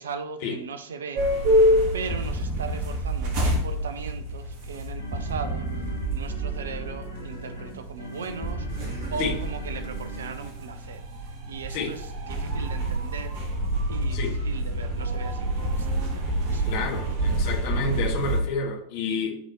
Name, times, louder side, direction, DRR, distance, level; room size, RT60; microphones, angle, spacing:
voice 1, 0.0-13.5 13.9-17.1, right 5 dB, 65° right, 11 dB, 0.8 m, -38 dB
sound 1, 1.1-18.4, equal, 45° right, 1.5 m, -28 dB
sound 2, 2.1-4.4 5.1-7.4 8.4-10.7, right 4 dB, 5° right, 1.9 m, -33 dB
sound 3, 4.4-10.8, left 1 dB, 85° right, 3.1 m, -41 dB
voice 2, 16.6-19.3, left 4 dB, 50° left, 2 dB, 1.8 m, -29 dB
13.0 x 4.7 x 3.0 m, 0.67 s
figure-of-eight pair, 90°, 0 cm